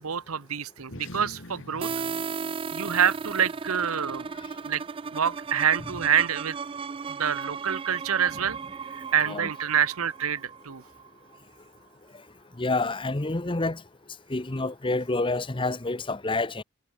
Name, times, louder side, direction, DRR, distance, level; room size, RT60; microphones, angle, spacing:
voice 1, 0.0-1.9 2.7-4.3 4.6-4.8 5.1-6.6 7.1-8.6 8.9-10.8, right 8 dB, 85° right, 0.9 m, -26 dB
sound 1, 0.8-5.6, left 1 dB, 60° left, 2.5 m, -48 dB
sound 2, 1.8-11.4, right 5 dB, 25° right, 0.3 m, -36 dB
voice 2, 12.6-13.8 14.3-16.6, left 2 dB, 25° left, 0.9 m, -28 dB
head